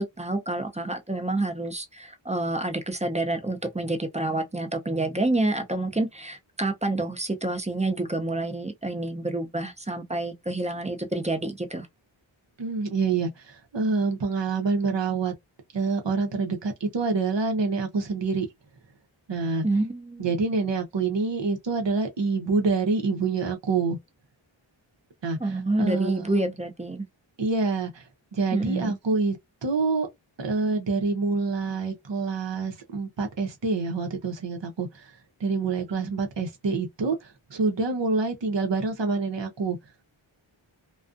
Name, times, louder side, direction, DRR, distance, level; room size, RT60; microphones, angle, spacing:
voice 1, 0.0-11.9 19.6-20.3 25.4-27.1 28.5-29.0, right 2 dB, 15° right, 0.6 m, -28 dB
voice 2, 12.6-15.3 15.7-18.5 19.3-19.7 20.2-24.0 25.2-26.5 27.4-28.0 28.3-29.4 29.6-30.1 30.4-35.1 35.4-39.8, right 4 dB, 65° right, 0.8 m, -26 dB
2.4 x 2.3 x 2.5 m
wide cardioid pair, 40°, 48 cm